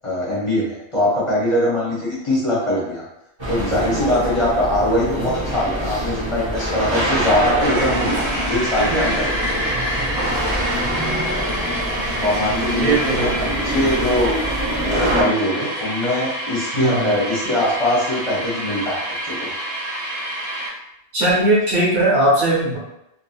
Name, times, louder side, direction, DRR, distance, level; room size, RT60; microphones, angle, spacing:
voice 1, 0.0-3.0 3.5-9.4 12.2-14.3 14.8-19.5, left 1 dB, 35° left, -7 dB, 0.7 m, -22 dB
sound 1, 3.4-15.2, right 1 dB, 30° right, 0.6 m, -25 dB
sound 2, 6.9-20.7, equal, 65° right, 1.2 m, -27 dB
voice 2, 12.8-13.3 16.7-17.1 21.1-22.8, right 1 dB, 80° right, -7 dB, 1.4 m, -18 dB
2.7 x 2.6 x 2.3 m, 0.86 s
omnidirectional pair, 1.1 m